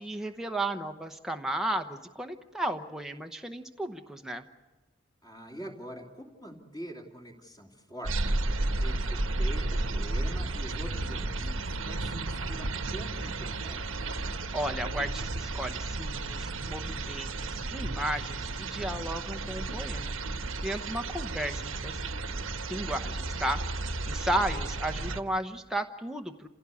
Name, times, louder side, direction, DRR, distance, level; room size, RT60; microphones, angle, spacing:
voice 1, 0.0-4.5 14.5-22.0 22.7-26.5, right 1 dB, 5° right, 4 dB, 0.9 m, -34 dB
voice 2, 5.2-14.0 24.2-24.6, right 1 dB, 20° left, 1 dB, 3.0 m, -45 dB
sound 1, 8.0-25.2, right 2 dB, 85° right, 1.3 m, -33 dB
28.0 x 16.5 x 8.4 m, 1.1 s
head